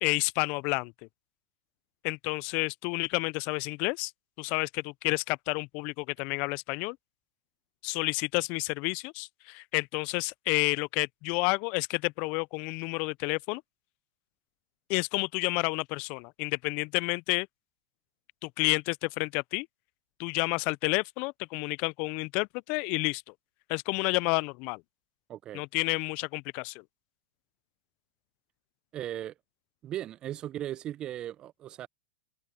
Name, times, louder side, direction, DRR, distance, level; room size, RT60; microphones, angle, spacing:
voice 1, 0.0-0.9 2.0-4.1 4.4-7.0 7.8-13.6 14.9-17.5 18.4-19.7 20.2-23.2 23.7-24.8 25.5-26.8, left 30 dB, 50° left, 0.5 m, -30 dB
voice 2, 25.3-25.6 28.9-29.3 29.8-31.9, right 12 dB, 35° right, 0.5 m, -37 dB
hypercardioid pair, 105°, 3 cm